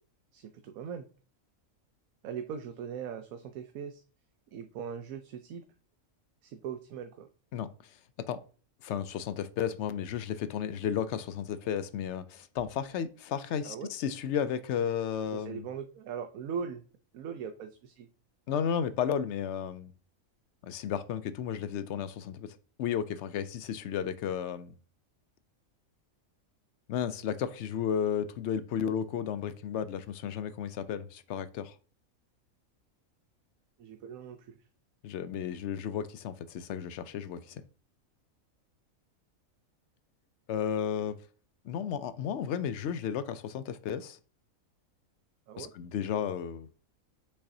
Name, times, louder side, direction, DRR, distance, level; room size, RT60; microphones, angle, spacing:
voice 1, 0.3-1.1 2.2-4.0 4.5-5.6 6.4-7.3 13.6-13.9 15.3-16.8 17.1-18.1 33.8-34.6 45.5-45.7, right 7 dB, 90° right, 1.1 m, -40 dB
voice 2, 7.5-8.0 8.3-8.4 8.8-15.7 18.5-19.9 20.6-24.8 26.9-31.8 35.0-37.6 40.5-41.2 41.6-44.2 45.6-46.7, left 8 dB, 65° left, 0.8 m, -33 dB
6.8 x 5.5 x 2.7 m
omnidirectional pair, 1.4 m